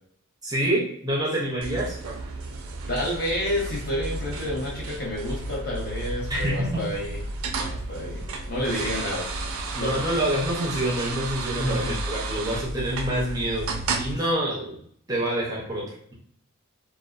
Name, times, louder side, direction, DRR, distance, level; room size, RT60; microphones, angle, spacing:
voice 1, 0.4-2.0 6.3-6.8 8.8-9.1 9.7-13.7 14.0-14.8 15.1-15.9, right 1 dB, 15° right, -3 dB, 0.5 m, -27 dB
sound 1, 1.6-14.1, right 3 dB, 75° right, 0.3 m, -32 dB
voice 2, 2.9-7.2 7.7-9.3 9.8-10.0 11.5-12.0, left 1 dB, 45° left, -4 dB, 0.8 m, -29 dB
2.5 x 2.2 x 2.3 m, 0.66 s
head